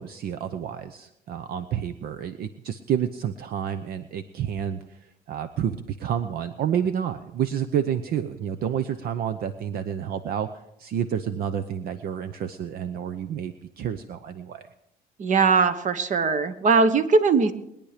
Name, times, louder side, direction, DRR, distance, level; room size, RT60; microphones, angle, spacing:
voice 1, 0.0-14.7, right 9 dB, 65° right, 11 dB, 0.8 m, -29 dB
voice 2, 15.2-17.5, right 4 dB, 45° right, 12 dB, 1.2 m, -20 dB
21.5 x 10.5 x 5.0 m, 0.83 s
cardioid pair, 110°, 17 cm